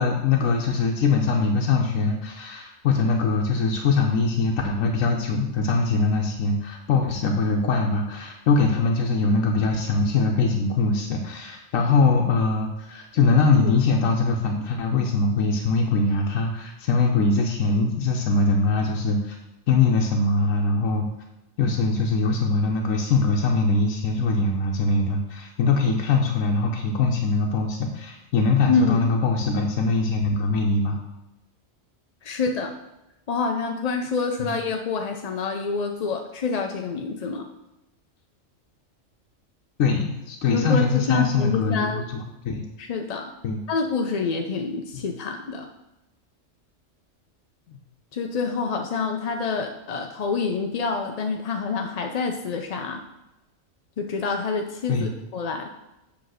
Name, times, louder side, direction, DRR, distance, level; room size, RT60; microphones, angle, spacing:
voice 1, 0.0-19.4 19.7-21.1 21.6-31.0 34.4-34.6 39.8-42.7 43.4-43.6 44.9-45.1 47.7-47.8 54.9-55.1, left 3 dB, 85° left, 1 dB, 1.2 m, -22 dB
voice 2, 28.7-29.0 32.2-32.7 33.3-37.5 40.5-42.0 42.8-43.3 43.7-45.7 48.1-53.0 54.0-55.7, left 4 dB, 50° left, 3 dB, 0.4 m, -27 dB
7.8 x 3.4 x 6.3 m, 0.94 s
omnidirectional pair, 1.3 m